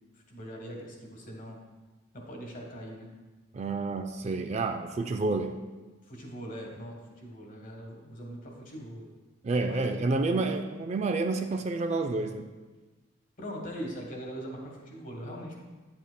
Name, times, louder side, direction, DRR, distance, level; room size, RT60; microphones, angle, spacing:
voice 1, 0.3-1.6 2.1-3.1 6.0-9.0 9.6-10.1 13.4-15.6, equal, 40° left, 0 dB, 1.3 m, -41 dB
voice 2, 3.5-5.6 9.4-12.5, right 3 dB, 35° right, 6 dB, 0.3 m, -29 dB
8.8 x 7.4 x 2.2 m, 1.2 s
head